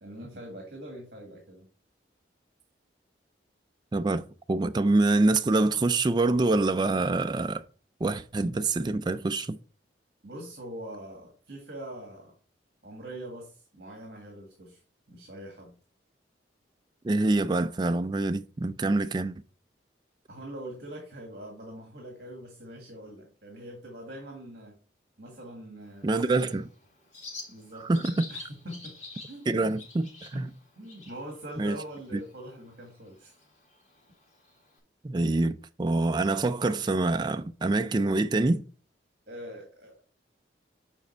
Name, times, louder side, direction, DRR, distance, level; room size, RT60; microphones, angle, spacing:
voice 1, 0.0-1.7 10.2-12.3 12.8-14.8 15.1-15.8 20.3-24.7 25.2-26.5 27.5-27.9 28.3-29.0 29.3-29.7 30.3-30.5 30.8-33.3 39.3-40.0, right 1 dB, 60° right, 1.8 m, -43 dB
voice 2, 3.9-7.6 8.0-9.6 17.0-19.3 26.0-26.6 27.7-28.3 29.5-30.5 31.6-31.8 32.1-32.2 35.0-38.6, right 2 dB, 25° right, 0.3 m, -26 dB
Bird, 25.8-34.8, left 3 dB, 40° left, 3.9 m, -49 dB
7.4 x 5.2 x 4.4 m
head